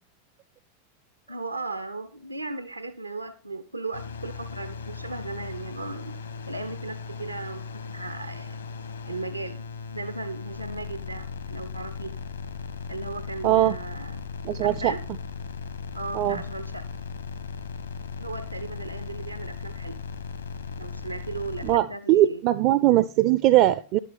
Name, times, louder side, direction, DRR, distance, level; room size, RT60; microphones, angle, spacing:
voice 1, 1.3-6.2 6.5-8.6 9.1-9.6 9.9-12.2 12.9-14.2 14.6-15.0 15.9-16.9 18.2-20.0 20.8-22.4, right 3 dB, 85° right, 0.7 m, -36 dB
sound 1, 3.9-21.8, left 5 dB, 75° left, 1.3 m, -37 dB
voice 2, 13.4-13.8 14.4-14.9 16.1-16.4 21.6-24.0, right 14 dB, 40° right, 0.4 m, -20 dB
11.0 x 8.3 x 4.2 m
figure-of-eight pair, 90°, 0 cm